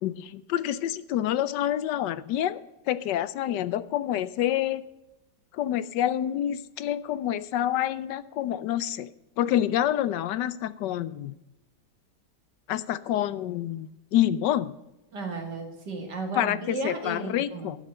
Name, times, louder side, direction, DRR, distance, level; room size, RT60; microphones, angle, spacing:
voice 1, 0.0-2.6 2.9-4.8 5.5-9.1 9.4-11.3 12.7-14.7 16.3-17.8, left 12 dB, 80° left, 16 dB, 1.2 m, -27 dB
voice 2, 15.1-17.8, right 3 dB, 70° right, 3 dB, 2.9 m, -34 dB
11.5 x 7.5 x 7.7 m, 0.96 s
omnidirectional pair, 1.9 m